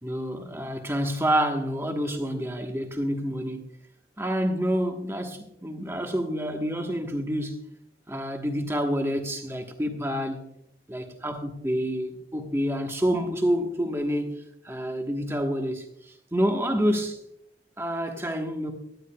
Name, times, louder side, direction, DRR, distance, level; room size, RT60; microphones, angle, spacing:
voice 1, 0.0-3.6 4.2-7.6 8.1-10.4 10.9-14.4 14.6-17.2 17.8-18.7, equal, 15° right, 1.2 m, -28 dB
17.0 x 12.0 x 2.3 m
head